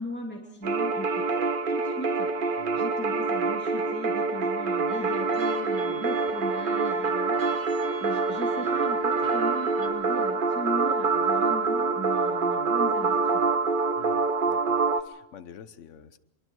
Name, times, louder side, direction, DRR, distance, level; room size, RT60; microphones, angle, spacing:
voice 1, 0.0-13.5, left 1 dB, 5° left, -2 dB, 2.6 m, -38 dB
sound 1, 0.6-15.0, right 4 dB, 45° right, 0.8 m, -26 dB
sound 2, 4.9-9.9, right 3 dB, 70° right, 2.3 m, -44 dB
voice 2, 14.0-14.8 15.0-16.2, left 8 dB, 60° left, 13 dB, 1.1 m, -48 dB
25.0 x 22.5 x 4.7 m, 0.99 s
omnidirectional pair, 1.6 m